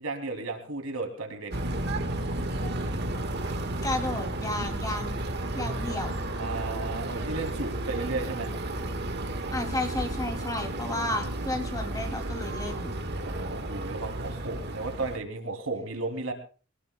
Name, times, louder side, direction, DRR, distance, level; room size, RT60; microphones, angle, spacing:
voice 1, 0.0-1.5 5.8-5.9 6.4-8.5 13.2-16.3, right 3 dB, 80° right, 4 dB, 2.8 m, -34 dB
Motorboat Traffic, 1.5-15.2, right 1 dB, 50° right, 1.5 m, -32 dB
voice 2, 3.8-5.2 5.5-6.2 9.5-12.9, left 1 dB, 15° left, 4 dB, 2.5 m, -32 dB
23.0 x 19.0 x 2.2 m, 0.36 s
head